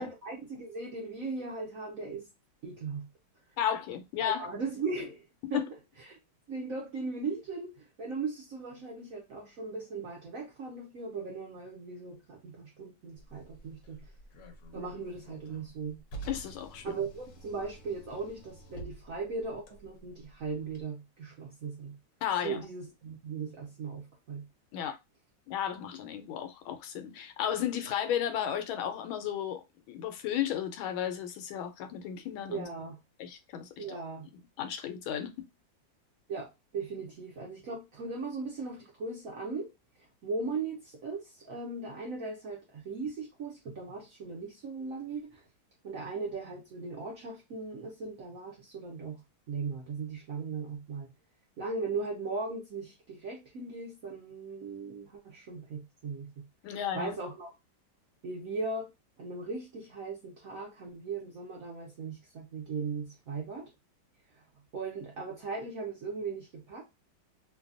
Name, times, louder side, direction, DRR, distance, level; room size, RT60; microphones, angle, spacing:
voice 1, 0.0-2.3 2.6-3.1 4.2-5.7 6.0-6.2 6.5-14.1 14.7-16.0 16.8-22.0 22.4-24.4 32.5-33.0 33.8-34.3 36.3-39.7 40.2-45.4 45.8-49.2 49.5-51.1 51.6-56.3 56.9-57.5 58.2-58.9 59.2-63.7 64.3-64.4 64.7-66.8, right 4 dB, 65° right, 0.8 m, -38 dB
voice 2, 3.6-4.5 5.4-5.7 16.3-17.0 22.2-22.6 24.7-25.0 25.5-32.6 33.2-34.0 34.6-35.5 56.6-57.1, left 10 dB, 85° left, 1.4 m, -34 dB
Car, 13.1-20.8, right 2 dB, 60° left, 0.9 m, -49 dB
3.2 x 2.2 x 2.5 m
omnidirectional pair, 2.2 m